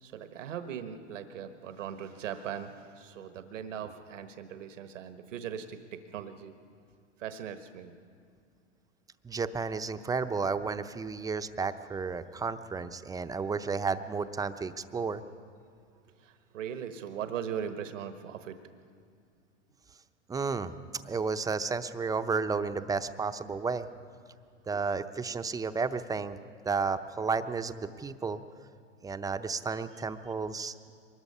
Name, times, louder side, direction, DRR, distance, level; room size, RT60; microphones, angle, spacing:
voice 1, 0.0-5.8 6.1-6.5 7.2-7.9 16.2-18.6, right 8 dB, 80° right, 9 dB, 1.3 m, -39 dB
voice 2, 9.2-15.2 20.3-20.7 21.0-23.9 24.7-26.4 26.6-28.4 29.0-30.9, right 4 dB, 10° right, 10 dB, 0.6 m, -32 dB
23.5 x 20.5 x 5.5 m, 2.2 s
hypercardioid pair, 105°, 37 cm